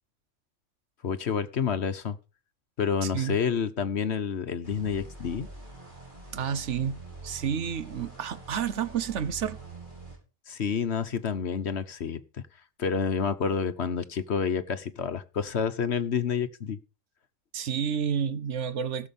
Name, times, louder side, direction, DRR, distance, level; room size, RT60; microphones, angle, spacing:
voice 1, 1.0-2.2 2.8-5.5 10.5-12.2 12.8-16.8, left 6 dB, 60° left, 1.2 m, -29 dB
voice 2, 3.0-3.4 6.3-9.6 17.5-19.1, right 7 dB, 65° right, 1.1 m, -30 dB
sound 1, 4.6-10.2, right 3 dB, 35° right, 6.3 m, -44 dB
17.0 x 7.1 x 5.4 m
omnidirectional pair, 1.3 m